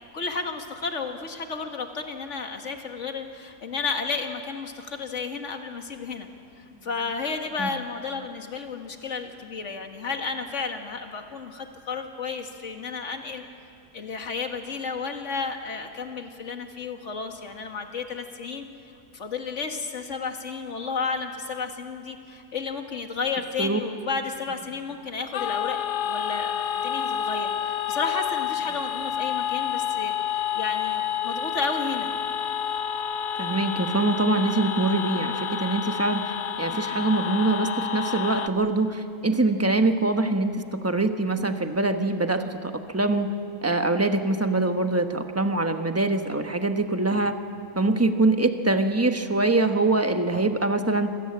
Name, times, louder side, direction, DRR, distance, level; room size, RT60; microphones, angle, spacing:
voice 1, 0.1-6.3 6.8-13.4 13.9-18.7 19.1-25.8 26.0-32.1, left 4 dB, 50° left, 5 dB, 2.0 m, -32 dB
sound 1, 25.3-38.5, left 8 dB, 75° left, 1.4 m, -29 dB
voice 2, 33.4-43.3 43.6-47.4 47.8-51.1, right 2 dB, 10° right, 6 dB, 0.9 m, -24 dB
26.0 x 18.0 x 8.7 m, 2.5 s
omnidirectional pair, 1.7 m